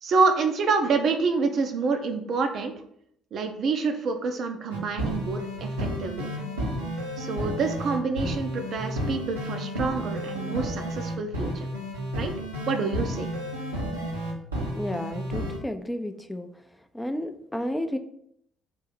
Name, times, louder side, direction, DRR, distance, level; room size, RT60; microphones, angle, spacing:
voice 1, 0.0-2.7 3.3-6.3 7.2-11.7 12.1-12.3 12.7-13.3, right 4 dB, 50° right, 5 dB, 0.5 m, -27 dB
sound 1, 4.7-15.6, equal, 85° right, 0.7 m, -31 dB
voice 2, 14.8-16.5 16.9-18.0, left 1 dB, 10° left, 8 dB, 0.4 m, -31 dB
3.7 x 2.7 x 4.1 m, 0.71 s
figure-of-eight pair, 50°, 0 cm